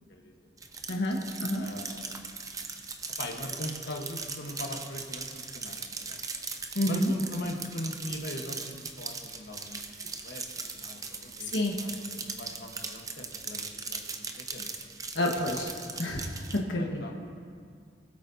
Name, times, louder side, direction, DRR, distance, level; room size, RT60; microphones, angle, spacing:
sound 1, 0.6-16.6, right 4 dB, 20° right, 0.6 m, -39 dB
voice 1, 0.9-1.6 6.7-7.1 11.4-11.8 15.1-15.7 16.0-17.0, left 1 dB, 80° left, 0 dB, 1.5 m, -29 dB
voice 2, 1.6-2.5 3.2-6.2 6.9-9.8 10.2-10.4 10.7-14.0 14.4-14.7 16.7-17.3, left 1 dB, 65° left, 1 dB, 1.3 m, -41 dB
21.0 x 8.5 x 2.8 m, 2.2 s
head